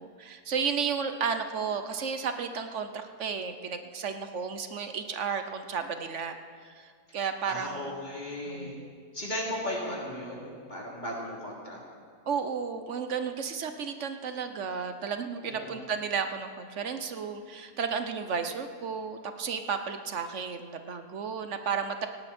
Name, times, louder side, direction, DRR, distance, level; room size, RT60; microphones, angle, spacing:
voice 1, 0.0-8.0 8.5-8.9 12.3-22.1, right 6 dB, 55° right, 8 dB, 1.1 m, -33 dB
voice 2, 7.5-8.8 9.1-11.8 15.4-15.9, left 1 dB, 25° left, -4 dB, 3.5 m, -36 dB
18.0 x 17.5 x 4.4 m, 2.1 s
omnidirectional pair, 1.7 m